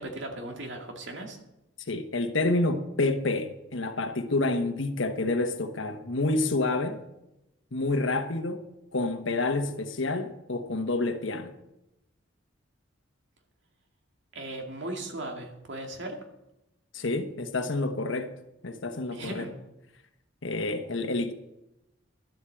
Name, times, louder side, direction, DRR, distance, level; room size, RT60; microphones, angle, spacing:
voice 1, 0.0-1.4 14.3-16.2 19.1-19.5, right 1 dB, 65° right, 2.3 m, -37 dB
voice 2, 1.9-7.0 7.7-8.6 8.9-11.5 16.9-18.3 18.6-19.5 20.4-21.3, left 2 dB, 75° left, 1.2 m, -28 dB
12.0 x 8.1 x 7.6 m
head